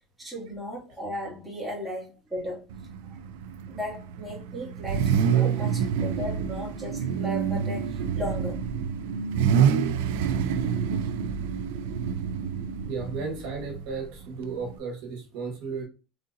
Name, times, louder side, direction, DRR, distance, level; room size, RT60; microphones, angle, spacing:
voice 1, 0.2-2.6 3.7-8.6, equal, 5° right, 2.1 m, -36 dB
Car / Idling / Accelerating revving vroom, 2.7-14.8, right 7 dB, 90° right, 0.4 m, -27 dB
voice 2, 12.8-15.8, right 4 dB, 70° right, 1.4 m, -34 dB
4.1 x 3.7 x 2.6 m
supercardioid pair, 130°, 0 cm